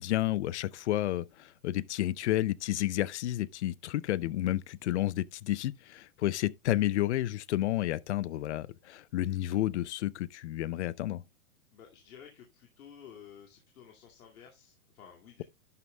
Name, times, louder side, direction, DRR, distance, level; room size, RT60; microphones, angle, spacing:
voice 1, 0.0-11.2, left 14 dB, 50° left, 0.6 m, -31 dB
voice 2, 11.7-15.4, left 8 dB, 75° left, 2.3 m, -53 dB
11.5 x 9.3 x 2.2 m
hypercardioid pair, 160°, 43 cm